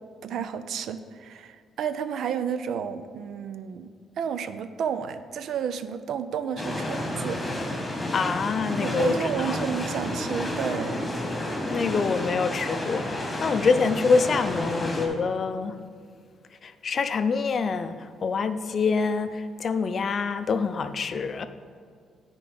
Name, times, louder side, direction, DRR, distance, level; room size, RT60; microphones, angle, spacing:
voice 1, 0.2-3.9 4.2-7.4 8.8-11.1, right 7 dB, 70° right, 11 dB, 0.4 m, -31 dB
sound 1, 6.6-15.1, left 1 dB, 20° left, 1.5 m, -31 dB
voice 2, 8.1-9.6 11.7-15.8 16.6-21.5, left 5 dB, 50° left, 11 dB, 0.4 m, -26 dB
9.9 x 4.5 x 3.9 m, 2.1 s
cardioid pair, 90°, 0 cm